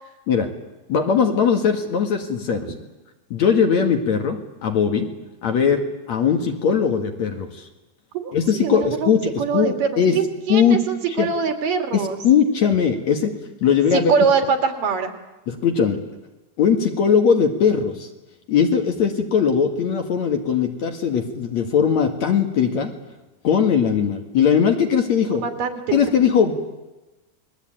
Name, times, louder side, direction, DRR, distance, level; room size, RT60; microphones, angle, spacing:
voice 1, 0.9-2.7 3.3-5.1 5.4-5.8 6.1-7.7 8.3-10.2 10.5-10.8 11.2-11.3 11.9-13.3 13.6-14.1 15.5-16.0 16.6-18.1 18.5-22.9 23.4-25.4 25.9-26.5, left 7 dB, 55° left, 5 dB, 2.9 m, -19 dB
voice 2, 8.1-9.1 9.4-12.2 13.9-15.1 25.3-26.0, right 5 dB, 65° right, 7 dB, 3.8 m, -23 dB
29.0 x 21.5 x 9.1 m, 1.1 s
omnidirectional pair, 4.3 m